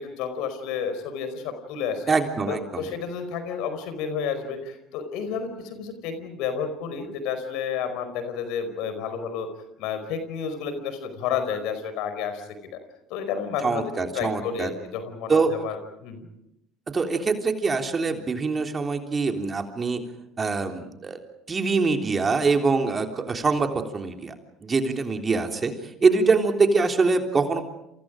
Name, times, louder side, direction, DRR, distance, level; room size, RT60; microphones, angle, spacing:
voice 1, 0.0-2.0 2.5-9.5 9.8-12.7 13.1-16.3, left 7 dB, 65° left, 9 dB, 4.8 m, -31 dB
voice 2, 2.1-2.9 13.6-14.7 15.3-15.5 16.9-20.0 20.4-21.2 21.5-24.3 24.6-25.7 26.0-27.6, right 4 dB, 30° right, 4 dB, 3.5 m, -24 dB
28.5 x 28.5 x 5.1 m, 0.84 s
hypercardioid pair, 65°, 0 cm